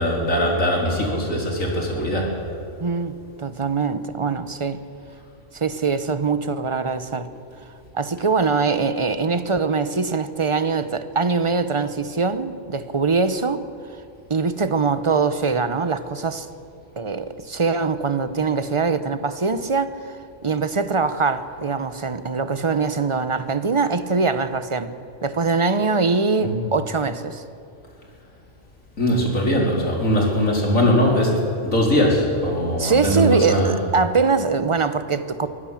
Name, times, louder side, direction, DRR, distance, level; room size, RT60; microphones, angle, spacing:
voice 1, 0.0-2.3 26.4-26.6 29.0-33.8, equal, 85° left, -1 dB, 4.5 m, -21 dB
voice 2, 2.8-4.8 5.5-7.3 7.9-13.6 14.3-16.5 17.0-24.9 25.2-27.4 32.8-35.5, right 4 dB, 25° right, 12 dB, 0.9 m, -22 dB
23.5 x 16.0 x 7.4 m, 2.7 s
omnidirectional pair, 1.4 m